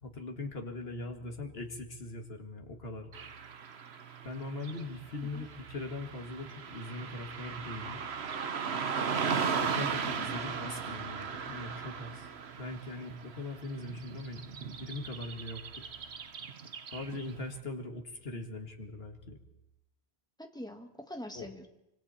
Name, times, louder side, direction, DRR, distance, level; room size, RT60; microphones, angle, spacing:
voice 1, 0.0-3.1 4.2-8.0 9.6-12.3 12.6-15.8 16.9-19.4 21.3-21.5, left 2 dB, 70° left, 4 dB, 2.3 m, -41 dB
Car passing by / Traffic noise roadway noise, 3.1-17.4, right 6 dB, 85° right, 1.3 m, -37 dB
voice 2, 10.0-10.3 20.4-21.7, equal, 5° left, 4 dB, 1.9 m, -44 dB
25.5 x 24.5 x 4.4 m, 0.86 s
omnidirectional pair, 1.0 m